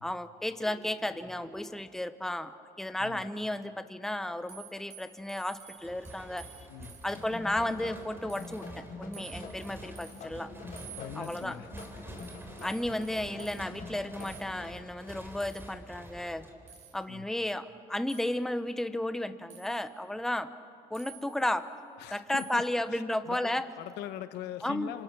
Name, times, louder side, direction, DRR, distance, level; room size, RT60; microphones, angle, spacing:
voice 1, 0.0-2.5 2.8-6.7 7.0-10.5 11.2-11.6 12.6-16.5 16.9-20.5 20.9-21.7 22.1-23.7 24.6-24.9, left 1 dB, 5° left, 11 dB, 0.9 m, -33 dB
sound 1, 4.5-7.3 7.7-8.0 8.3-8.7 9.1-10.2 10.8-13.6 14.2-14.4 15.4-15.8 16.7-17.0 18.1-18.3 19.5-20.0 20.9-21.5 22.4-22.7, right 8 dB, 45° right, 7.4 m, -52 dB
sound 2, 5.8-17.0, equal, 15° right, 3.5 m, -49 dB
sound 3, 7.1-14.7, left 3 dB, 50° left, 4.3 m, -46 dB
voice 2, 10.8-11.7 17.1-17.3 22.0-22.6 22.9-25.0, left 11 dB, 85° left, 11 dB, 1.2 m, -42 dB
27.0 x 26.0 x 6.1 m, 2.5 s
cardioid pair, 110°, 17 cm